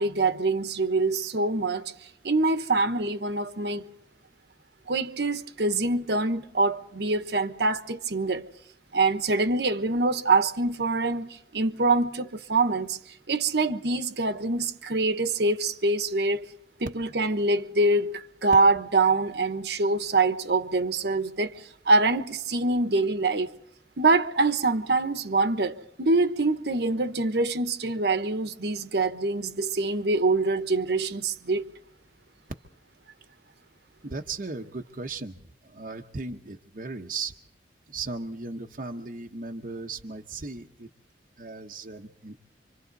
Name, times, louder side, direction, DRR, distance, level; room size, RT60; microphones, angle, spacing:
voice 1, 0.0-1.8 2.2-3.8 4.9-8.4 8.9-13.0 13.3-16.5 16.8-23.5 24.0-31.6, right 3 dB, 65° right, 1.1 m, -25 dB
voice 2, 34.0-35.4 35.6-37.4 37.9-40.9 41.4-42.4, right 3 dB, 50° right, 0.9 m, -36 dB
26.5 x 25.5 x 4.0 m
head